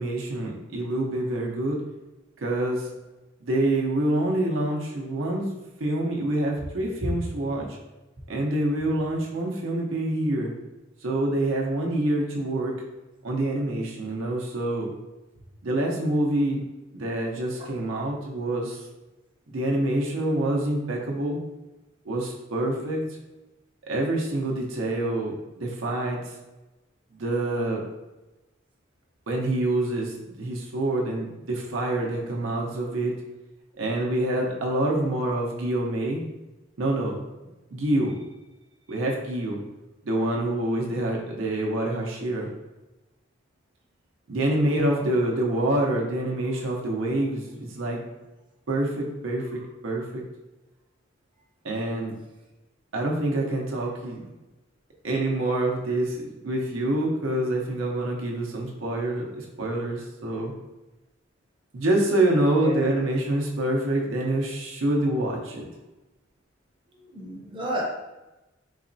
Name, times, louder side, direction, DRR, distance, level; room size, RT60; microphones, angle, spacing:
voice 1, 0.0-1.8 2.4-2.9 3.4-5.5 5.8-7.7 8.3-10.5 11.0-12.7 13.2-14.9 15.6-16.6 16.9-18.8 19.5-21.4 22.1-23.0 23.9-26.2 27.2-27.8 29.3-33.1 33.8-36.2 36.8-37.2 37.7-38.2 38.9-39.6 40.0-42.5 44.3-48.0 48.7-50.2 51.6-52.1 52.9-54.2 55.0-56.2 56.4-60.5 61.7-65.7, right 1 dB, 80° right, -1 dB, 0.6 m, -26 dB
voice 2, 67.1-67.8, right 1 dB, 25° right, -2 dB, 0.6 m, -31 dB
4.0 x 2.9 x 2.6 m, 1.0 s
head